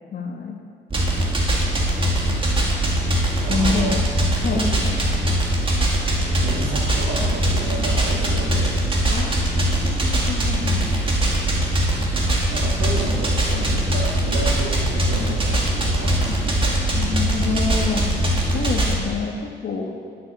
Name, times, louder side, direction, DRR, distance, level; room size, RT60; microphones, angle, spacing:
voice 1, 0.1-0.6 3.5-4.0 4.4-4.6 9.1-10.8 16.3-16.4 16.9-18.0 18.5-19.9, left 4 dB, 55° left, 1 dB, 1.7 m, -27 dB
sound 1, 0.9-19.0, right 1 dB, 25° right, 2.2 m, -21 dB
voice 2, 3.4-4.0 4.5-5.0 6.4-8.9 12.5-16.9 18.4-18.8, right 1 dB, 80° right, -4 dB, 3.3 m, -31 dB
11.0 x 7.7 x 5.6 m, 2.1 s
cardioid pair, 90°, 20 cm